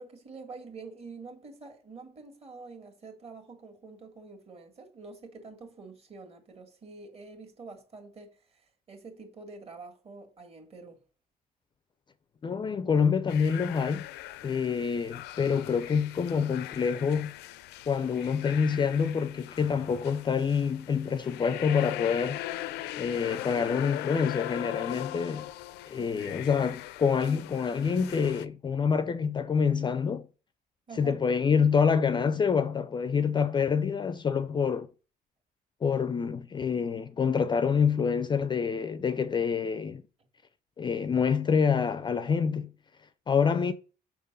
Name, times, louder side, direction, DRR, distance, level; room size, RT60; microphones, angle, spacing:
voice 1, 0.0-11.0 26.0-26.4 30.9-31.2, right 4 dB, 35° right, 1.9 m, -47 dB
voice 2, 12.4-14.1 14.4-17.3 17.9-22.4 23.0-25.5 25.9-30.2 31.0-34.9 35.8-40.0 40.8-42.7 43.3-43.7, left 6 dB, 25° left, 0.4 m, -27 dB
sound 1, 13.3-28.5, left 14 dB, 85° left, 0.5 m, -40 dB
5.9 x 3.7 x 5.4 m
cardioid pair, 110°, 17 cm